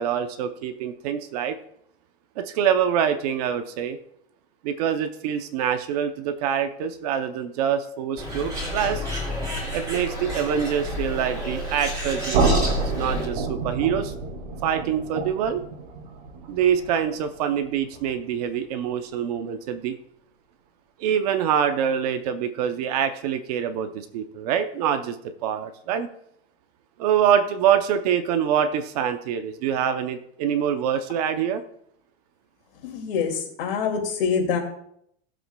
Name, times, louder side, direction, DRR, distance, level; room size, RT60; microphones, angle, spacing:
voice 1, 0.0-1.6 2.4-4.0 4.6-9.1 9.7-14.1 14.6-15.6 16.5-19.9 21.0-25.2 25.4-26.1 27.0-31.6, right 8 dB, 40° right, 9 dB, 0.6 m, -25 dB
Bird, 8.2-13.3, equal, 15° right, 3.1 m, -31 dB
sound 1, 12.3-18.2, right 3 dB, 85° right, 2.1 m, -28 dB
voice 2, 32.8-34.6, left 6 dB, 60° left, 3 dB, 2.3 m, -25 dB
17.5 x 7.6 x 2.2 m, 0.71 s
supercardioid pair, 180°, 31 cm